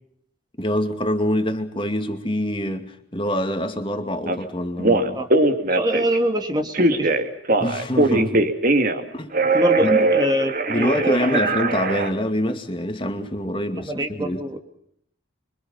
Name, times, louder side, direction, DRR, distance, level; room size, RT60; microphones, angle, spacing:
voice 1, 0.6-5.2 7.6-8.5 9.1-9.3 9.8-10.0 10.7-14.4, equal, 25° left, 2.4 m, -25 dB
Telephone, 4.3-4.4 4.8-6.2 6.7-9.1 9.3-12.1, right 2 dB, 45° right, 2.5 m, -20 dB
voice 2, 5.7-7.1 9.5-11.4 13.8-14.6, right 1 dB, 20° right, 2.1 m, -24 dB
27.5 x 24.5 x 5.6 m
head